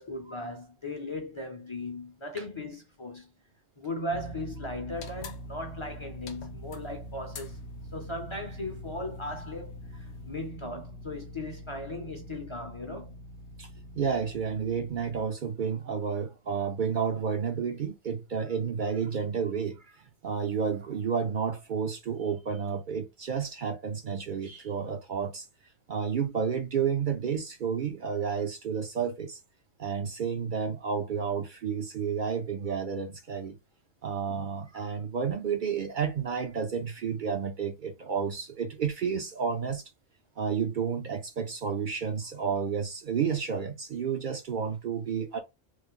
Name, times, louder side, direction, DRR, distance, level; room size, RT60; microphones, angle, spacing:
voice 1, 0.0-3.3 3.8-7.6 7.9-13.2, left 1 dB, 35° left, 0.6 m, -37 dB
sound 1, 4.1-15.2, equal, 80° right, 1.3 m, -44 dB
sound 2, 5.0-10.5, left 5 dB, 80° left, 0.9 m, -49 dB
voice 2, 14.0-25.5 25.9-29.4 29.8-33.6 34.0-39.8 40.4-45.4, right 6 dB, 55° right, 0.6 m, -31 dB
3.1 x 2.1 x 3.6 m
omnidirectional pair, 1.1 m